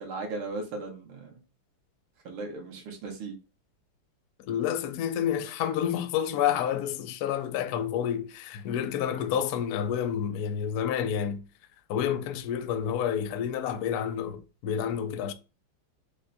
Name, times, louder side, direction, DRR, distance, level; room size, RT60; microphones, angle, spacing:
voice 1, 0.0-1.4 2.2-3.3, right 3 dB, 75° right, 2.0 m, -37 dB
voice 2, 4.5-11.4 11.9-15.3, left 9 dB, 85° left, 0.8 m, -29 dB
5.2 x 2.2 x 3.8 m
omnidirectional pair, 2.3 m